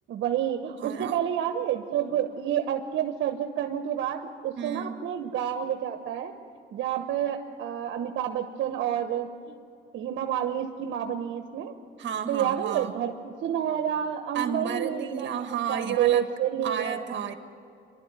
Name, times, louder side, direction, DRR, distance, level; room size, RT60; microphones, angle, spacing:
voice 1, 0.1-6.3 6.7-9.5 9.9-11.7 12.3-15.3 15.7-17.0, right 10 dB, 80° right, 6 dB, 1.1 m, -29 dB
voice 2, 0.8-1.2 4.6-5.0 12.0-13.0 14.3-16.3 16.6-17.3, right 7 dB, 65° right, 7 dB, 1.8 m, -32 dB
27.0 x 12.0 x 9.2 m, 2.6 s
cardioid pair, 90°, 20 cm